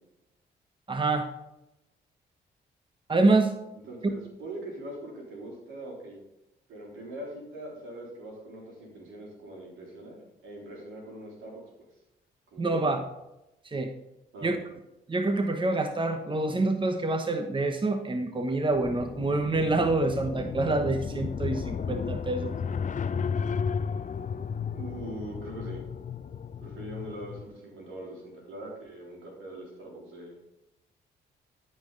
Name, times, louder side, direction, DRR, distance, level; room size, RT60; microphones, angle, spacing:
voice 1, 0.9-1.3 3.1-3.5 4.0-4.1 12.6-13.0 13.6-13.9 14.4-14.6 15.1-22.5, right 2 dB, 25° right, 7 dB, 1.0 m, -26 dB
voice 2, 3.9-6.2 6.7-11.6 12.5-13.0 14.3-14.6 24.7-25.8 26.6-30.5, right 1 dB, 80° right, -2 dB, 3.6 m, -42 dB
sound 1, 18.7-27.5, left 6 dB, 40° left, 0.6 m, -34 dB
12.5 x 5.5 x 3.9 m, 0.93 s
supercardioid pair, 55°, 20 cm